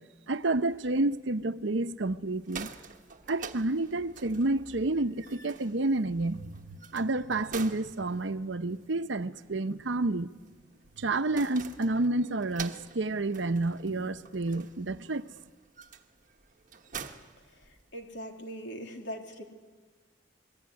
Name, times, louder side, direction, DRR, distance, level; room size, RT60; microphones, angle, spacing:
voice 1, 0.3-2.7 3.3-10.3 11.0-15.3, right 2 dB, 75° right, 0.8 m, -30 dB
sound 1, 2.2-18.2, right 6 dB, 45° right, 1.4 m, -47 dB
voice 2, 17.9-19.4, equal, 70° left, 3.4 m, -40 dB
26.5 x 22.0 x 9.7 m
head